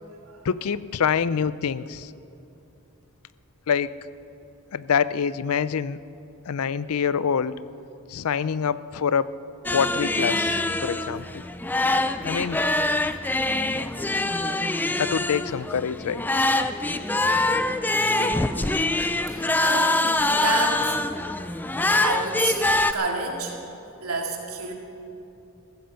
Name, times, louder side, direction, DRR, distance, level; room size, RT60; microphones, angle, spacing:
voice 1, 0.4-2.1 3.7-3.9 4.7-6.0 6.5-7.6 8.1-9.3 9.7-11.4 12.2-12.6 15.0-16.2, left 7 dB, 80° left, 17 dB, 0.5 m, -25 dB
sound 1, 9.7-22.9, left 2 dB, 10° left, 0.3 m, -24 dB
voice 2, 18.0-18.4 19.3-20.0 20.3-21.0 22.0-23.6 24.0-24.7, right 3 dB, 80° right, 0 dB, 2.5 m, -29 dB
15.5 x 15.0 x 5.8 m, 2.9 s
head